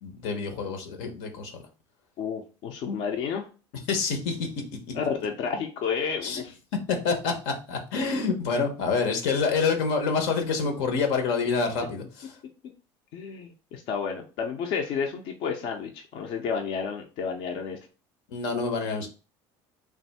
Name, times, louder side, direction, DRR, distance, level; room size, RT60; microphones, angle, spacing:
voice 1, 0.0-1.6 3.9-4.6 6.2-6.4 6.9-12.3 18.3-19.1, left 4 dB, 90° left, 5 dB, 1.0 m, -27 dB
voice 2, 2.2-3.5 4.9-6.6 13.1-17.8, left 6 dB, 60° left, 2 dB, 0.6 m, -31 dB
3.4 x 2.6 x 4.1 m, 0.35 s
cardioid pair, 150°, 10 cm